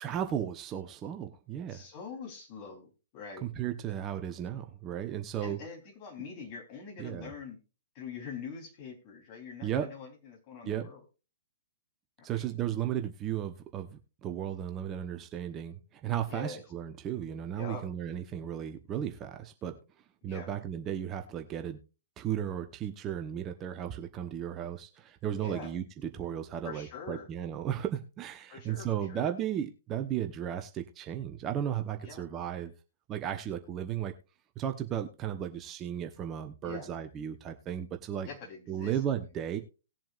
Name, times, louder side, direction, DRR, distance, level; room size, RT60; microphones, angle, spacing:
voice 1, 0.0-1.8 3.4-5.6 7.0-7.3 9.6-9.9 10.6-10.9 12.2-19.8 20.2-21.8 22.2-32.7 33.1-34.1 34.6-38.3 38.7-39.6, right 10 dB, 25° right, 6 dB, 1.0 m, -35 dB
voice 2, 1.7-3.5 5.4-7.6 8.0-11.0 12.2-12.4 16.3-16.6 17.6-17.8 20.2-20.5 25.4-25.7 26.6-27.3 28.5-29.3 32.0-32.3 36.6-36.9 38.2-39.0, left 5 dB, 35° left, 2 dB, 3.7 m, -44 dB
19.0 x 7.5 x 2.5 m, 0.32 s
figure-of-eight pair, 115°, 0 cm